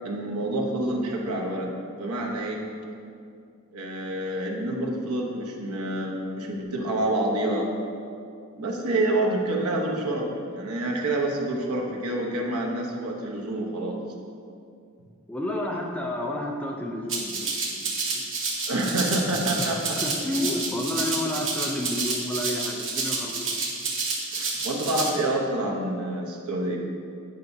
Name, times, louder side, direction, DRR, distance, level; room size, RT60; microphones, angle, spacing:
voice 1, 0.0-2.6 3.7-7.7 8.6-14.0 18.7-20.0 24.3-26.8, right 1 dB, 85° right, 0 dB, 0.9 m, -27 dB
voice 2, 15.3-18.2 19.6-23.6, left 1 dB, 5° left, 0 dB, 0.4 m, -31 dB
Rattle (instrument), 17.1-25.1, right 4 dB, 60° right, 1.1 m, -29 dB
8.9 x 5.8 x 2.7 m, 2.4 s
head